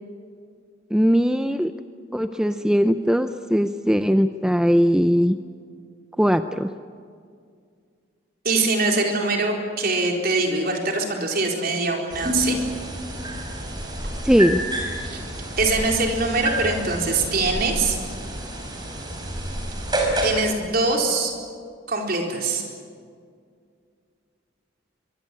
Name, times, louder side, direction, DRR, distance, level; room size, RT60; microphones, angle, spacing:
voice 1, 0.9-1.7 2.1-5.4 6.2-6.7 14.2-14.6, equal, 5° right, 9 dB, 0.5 m, -19 dB
voice 2, 8.4-12.6 15.0-15.2 15.6-18.0 20.2-21.3 21.9-22.6, right 3 dB, 50° right, 1 dB, 4.2 m, -23 dB
sound 1, 12.1-20.4, right 1 dB, 20° right, 4.8 m, -29 dB
23.5 x 23.5 x 8.5 m, 2.2 s
head